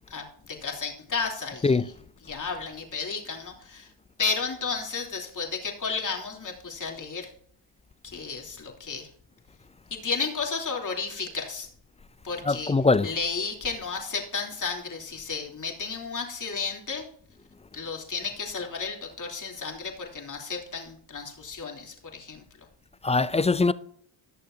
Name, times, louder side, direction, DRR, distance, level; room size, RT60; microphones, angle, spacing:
voice 1, 0.1-1.8 2.2-3.9 4.2-7.3 8.0-9.1 9.9-11.7 12.2-12.7 13.0-17.0 17.7-22.4, left 5 dB, 40° left, 3.3 m, -33 dB
voice 2, 12.5-13.1 23.0-23.7, left 3 dB, 15° left, 0.3 m, -22 dB
19.0 x 6.7 x 2.7 m
cardioid pair, 90°, 49 cm